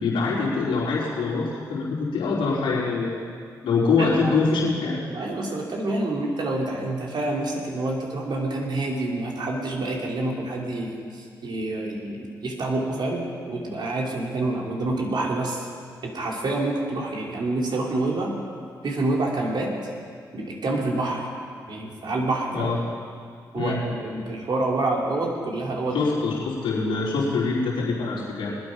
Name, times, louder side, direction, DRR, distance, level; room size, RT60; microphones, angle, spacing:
voice 1, 0.0-3.2 3.6-5.0 22.5-22.8 23.5-23.8 25.9-28.5, left 4 dB, 75° left, -6 dB, 4.2 m, -24 dB
voice 2, 4.0-4.3 5.1-15.7 16.0-18.4 18.8-19.7 20.3-21.3 21.7-22.7 23.5-26.0, right 2 dB, 60° right, -1 dB, 2.8 m, -27 dB
21.0 x 8.7 x 5.1 m, 2.1 s
hypercardioid pair, 45°, 9 cm